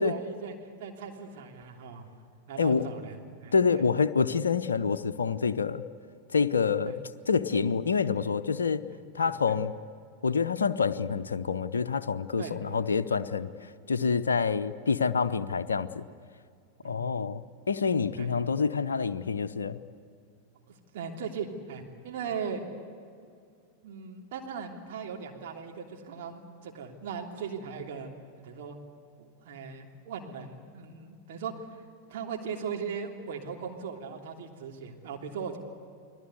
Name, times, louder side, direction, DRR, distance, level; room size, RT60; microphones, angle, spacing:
voice 1, 0.0-2.1 2.5-3.8 6.8-7.0 9.5-9.6 12.4-12.8 16.8-16.9 18.2-18.3 20.7-22.6 23.8-28.1 28.4-28.8 29.2-31.7 32.1-35.6, right 6 dB, 50° right, 1 dB, 3.1 m, -38 dB
voice 2, 3.5-5.8 6.3-7.0 7.3-8.9 9.1-9.7 10.2-13.5 13.9-16.0 16.8-19.8, left 5 dB, 70° left, 10 dB, 0.8 m, -27 dB
29.5 x 21.0 x 8.3 m, 2.3 s
figure-of-eight pair, 90°, 0 cm